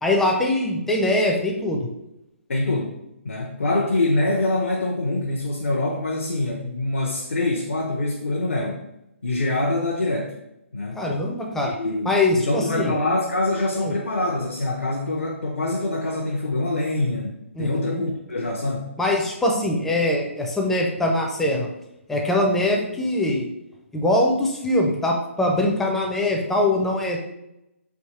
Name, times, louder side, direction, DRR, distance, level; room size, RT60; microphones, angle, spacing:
voice 1, 0.0-1.9 11.0-11.7 12.1-12.9 13.7-13.9 17.6-18.1 19.0-21.7 22.1-23.5 23.9-27.2, left 1 dB, 5° left, 0 dB, 0.4 m, -22 dB
voice 2, 2.5-3.0 3.2-8.8 9.2-10.3 10.7-11.0 11.6-18.9, left 2 dB, 65° left, -1 dB, 0.6 m, -25 dB
3.5 x 2.8 x 4.1 m, 0.88 s
figure-of-eight pair, 135°, 7 cm